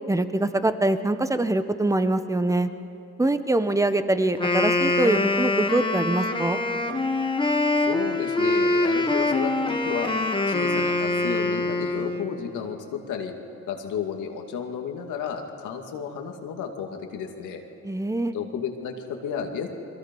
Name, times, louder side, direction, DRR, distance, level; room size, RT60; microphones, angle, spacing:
voice 1, 0.1-2.7 3.2-6.6 17.8-18.3, right 2 dB, 10° right, 10 dB, 1.1 m, -24 dB
Wind instrument woodwind instrument, 4.3-12.3, left 2 dB, 15° left, 1.7 m, -24 dB
voice 2, 7.9-10.1 10.5-13.3 13.7-17.6 18.3-19.7, left 7 dB, 85° left, 3 dB, 2.4 m, -32 dB
30.0 x 23.0 x 5.5 m, 2.7 s
cardioid pair, 90°, 30 cm